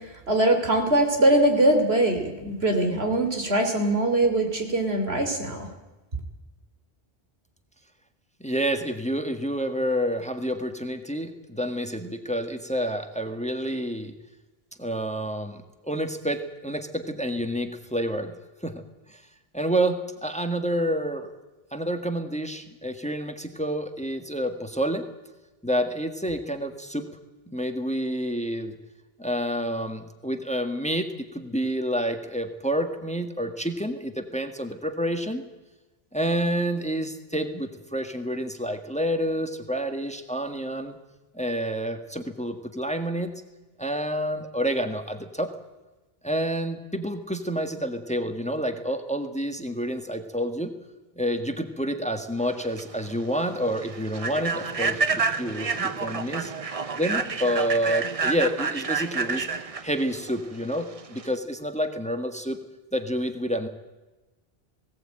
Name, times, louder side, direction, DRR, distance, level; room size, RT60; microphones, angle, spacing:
voice 1, 0.3-5.7, right 1 dB, 75° right, 4 dB, 3.5 m, -22 dB
voice 2, 8.4-14.1 14.8-18.3 18.6-18.8 19.1-19.2 19.5-21.3 21.7-25.1 25.6-27.1 27.5-28.7 29.2-35.4 36.1-41.0 41.3-43.4 43.8-45.5 46.2-50.7 51.2-56.5 56.9-62.6 62.9-63.7, equal, 5° left, 7 dB, 1.5 m, -28 dB
Human voice / Train, 52.5-61.4, right 4 dB, 35° right, 0.9 m, -29 dB
19.5 x 17.5 x 8.9 m, 1.1 s
omnidirectional pair, 1.1 m